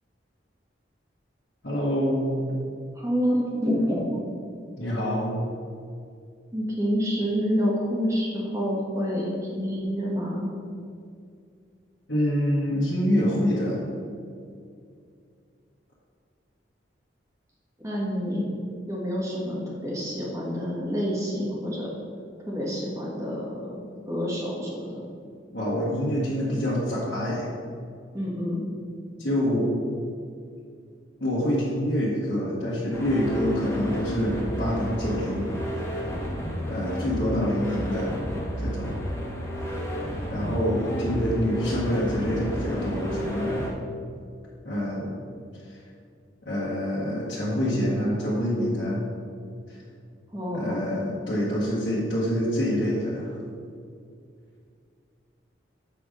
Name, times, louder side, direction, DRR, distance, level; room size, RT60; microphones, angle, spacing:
voice 1, 1.6-2.4 4.8-5.5 12.1-13.8 25.5-27.5 29.2-29.8 31.2-35.6 36.7-38.1 38.6-39.0 40.3-43.6 44.6-45.1 45.7-45.8 46.4-49.1 49.7-49.8 50.5-53.4, equal, 70° left, -10 dB, 1.6 m, -26 dB
voice 2, 2.9-4.3 6.5-10.5 17.8-18.5 18.9-21.9 22.5-25.1 28.1-28.6 50.3-50.9, equal, 15° right, -5 dB, 1.6 m, -28 dB
sound 1, 32.9-43.7, equal, 15° left, 1.3 m, -31 dB
8.0 x 3.5 x 6.4 m, 2.3 s
head